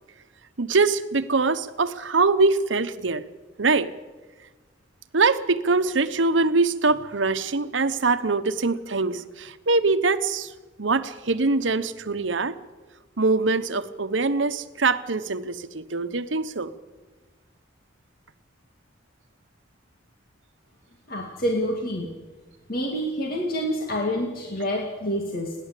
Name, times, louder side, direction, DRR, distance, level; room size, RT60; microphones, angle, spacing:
voice 1, 0.6-3.2 3.6-3.9 5.1-10.5 10.8-12.5 13.2-16.7, right 3 dB, 80° right, 1.0 m, -23 dB
voice 2, 21.1-22.1 22.7-25.5, equal, 50° left, 2.2 m, -27 dB
28.5 x 11.0 x 8.4 m
head